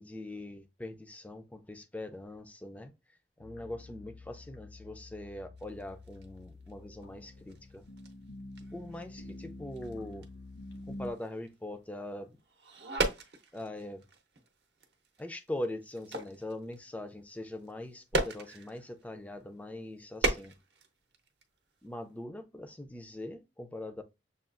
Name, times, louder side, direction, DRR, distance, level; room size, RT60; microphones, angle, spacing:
voice 1, 0.0-2.9 3.4-7.8 8.7-10.3 10.9-12.4 13.5-14.1 15.2-20.5 21.8-24.0, left 1 dB, 10° left, 0.3 m, -42 dB
sound 1, 3.4-11.1, left 2 dB, 85° left, 1.1 m, -48 dB
sound 2, 5.6-7.0 7.4-12.0 12.4-19.1 19.8-21.6 21.8-21.9, right 2 dB, 60° right, 0.7 m, -37 dB
6.7 x 2.3 x 2.4 m
head